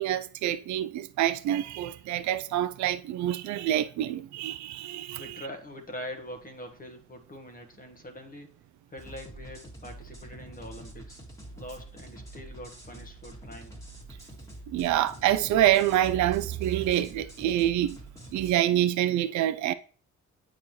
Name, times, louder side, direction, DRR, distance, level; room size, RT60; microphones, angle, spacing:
voice 1, 0.0-5.4 14.7-18.0 18.3-19.7, right 12 dB, 70° right, 0.5 m, -26 dB
voice 2, 5.2-8.5 8.9-11.2 11.6-13.8, left 1 dB, 30° left, 1.3 m, -43 dB
sound 1, 9.0-18.6, right 1 dB, 10° left, 1.8 m, -46 dB
8.7 x 4.2 x 3.1 m
cardioid pair, 90°, 30 cm